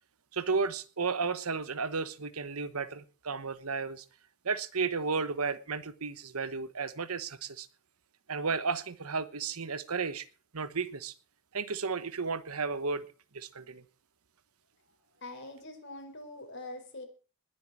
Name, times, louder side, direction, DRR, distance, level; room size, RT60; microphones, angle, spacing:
voice 1, 0.3-4.0 4.4-7.7 8.3-10.3 10.5-11.1 11.5-13.0 13.3-13.8, right 4 dB, 85° right, 14 dB, 1.1 m, -33 dB
voice 2, 15.2-17.1, left 2 dB, 55° left, 4 dB, 4.8 m, -44 dB
20.5 x 7.6 x 6.2 m, 0.37 s
head